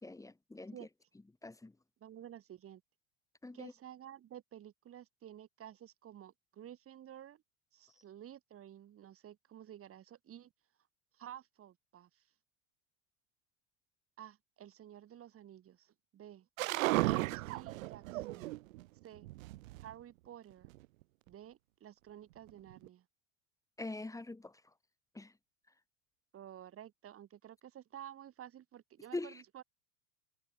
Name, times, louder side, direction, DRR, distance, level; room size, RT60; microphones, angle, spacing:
voice 1, 0.0-0.9 1.4-1.7 3.4-3.7 23.8-24.6 25.1-25.3 29.1-29.4, left 2 dB, 5° left, 4.5 m, -43 dB
voice 2, 2.0-2.8 3.5-7.4 7.7-10.5 11.2-12.1 14.2-16.5 17.1-18.5 19.0-19.3 19.8-20.7 21.3-23.0 26.3-29.6, right 11 dB, 30° right, 3.8 m, -52 dB
sound 1, 16.6-18.8 19.2-19.9 20.6-20.8 22.5-22.9, right 19 dB, 70° right, 0.9 m, -35 dB
hypercardioid pair, 110°, 42 cm